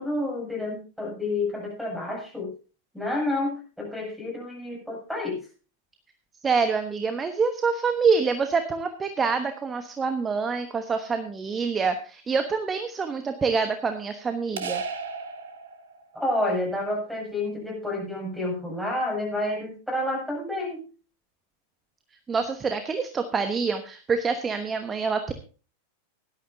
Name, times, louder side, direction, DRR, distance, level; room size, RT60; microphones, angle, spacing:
voice 1, 0.0-2.5 2.9-5.4 16.1-20.8, left 2 dB, ahead, -3 dB, 7.1 m, -29 dB
voice 2, 6.4-14.8 22.3-25.3, right 5 dB, 20° right, 8 dB, 1.1 m, -26 dB
sound 1, 14.6-16.2, right 5 dB, 60° right, 1.5 m, -34 dB
17.0 x 12.5 x 2.8 m, 0.36 s
figure-of-eight pair, 90°, 0 cm